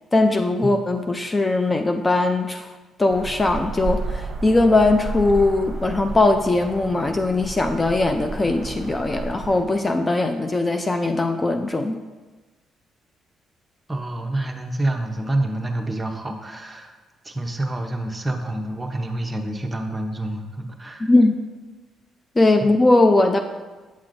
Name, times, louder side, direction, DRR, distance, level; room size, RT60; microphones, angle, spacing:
voice 1, 0.1-2.7 3.0-12.0 21.0-21.4 22.4-23.4, left 2 dB, 25° left, 6 dB, 0.4 m, -20 dB
sound 1, 3.1-9.6, right 3 dB, 45° right, 1.0 m, -32 dB
voice 2, 13.9-17.0 17.2-21.1, right 1 dB, 20° right, 4 dB, 0.7 m, -27 dB
8.2 x 5.9 x 2.6 m, 1.3 s
cardioid pair, 90°, 0 cm